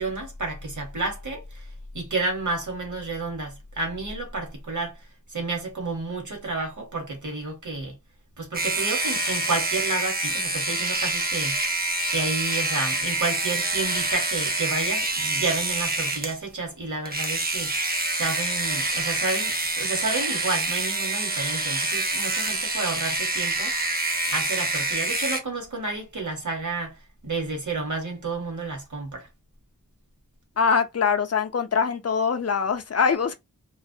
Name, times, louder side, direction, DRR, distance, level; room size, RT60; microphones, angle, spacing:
voice 1, 0.0-1.7 1.9-8.0 8.4-11.6 12.1-17.7 18.1-23.8 24.3-29.3, right 3 dB, 60° right, 1.1 m, -31 dB
sound 1, 8.5-16.4 17.1-25.4, right 2 dB, 25° right, 0.6 m, -26 dB
voice 2, 30.6-33.3, left 6 dB, 45° left, 0.4 m, -23 dB
2.3 x 2.0 x 2.6 m
wide cardioid pair, 65°, 34 cm